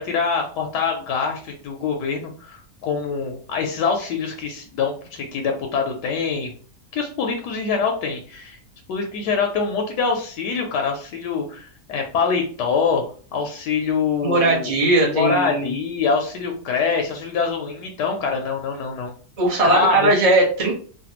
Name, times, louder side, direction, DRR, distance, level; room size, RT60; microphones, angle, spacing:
voice 1, 0.0-6.5 6.9-8.6 8.9-13.0 13.3-14.7 15.1-19.1 19.6-20.1, left 5 dB, 75° left, 3 dB, 1.2 m, -24 dB
voice 2, 14.2-15.7 19.4-20.8, right 2 dB, 30° right, -3 dB, 0.7 m, -18 dB
3.3 x 2.2 x 2.9 m, 0.43 s
omnidirectional pair, 1.9 m